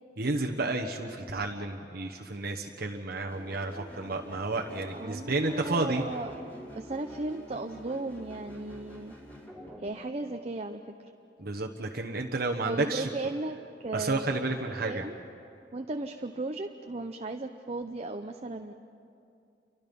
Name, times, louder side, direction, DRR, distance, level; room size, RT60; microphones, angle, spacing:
voice 1, 0.2-6.1 11.4-13.1 13.9-15.1, right 2 dB, 60° right, 2 dB, 1.2 m, -31 dB
sound 1, 3.3-9.9, equal, 10° left, 4.4 m, -47 dB
voice 2, 4.9-6.3 6.7-9.1 9.8-10.8 12.6-15.2 15.7-18.7, right 2 dB, 35° right, 4 dB, 0.8 m, -36 dB
29.5 x 24.5 x 5.4 m, 2.5 s
head